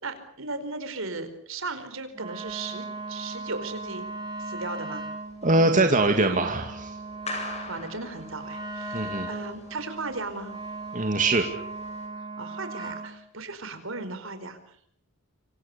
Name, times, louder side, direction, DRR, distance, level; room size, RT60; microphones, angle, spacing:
voice 1, 0.0-4.1 4.4-5.1 7.7-10.5 12.4-14.8, right 3 dB, 65° right, 10 dB, 4.7 m, -36 dB
Wind instrument woodwind instrument, 2.1-13.1, right 3 dB, 20° right, 4.7 m, -38 dB
sound 1, 2.4-12.1, left 2 dB, 30° left, 8.0 m, -45 dB
voice 2, 5.4-6.9 8.9-9.3 10.9-11.5, right 2 dB, 35° right, 4 dB, 2.3 m, -22 dB
26.5 x 26.5 x 7.0 m, 0.65 s
head